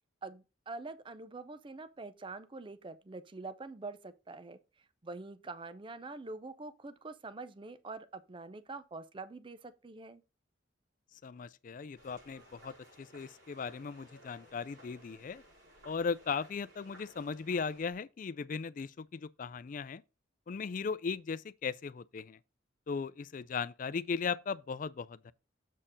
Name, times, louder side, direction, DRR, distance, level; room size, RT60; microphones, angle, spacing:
voice 1, 0.2-10.2, right 3 dB, 25° right, 0.5 m, -45 dB
voice 2, 11.2-15.4 15.8-20.0 20.5-22.4 22.9-25.3, left 5 dB, 45° left, 0.4 m, -37 dB
sound 1, 11.9-17.9, equal, 80° right, 5.0 m, -58 dB
7.3 x 4.4 x 5.1 m
head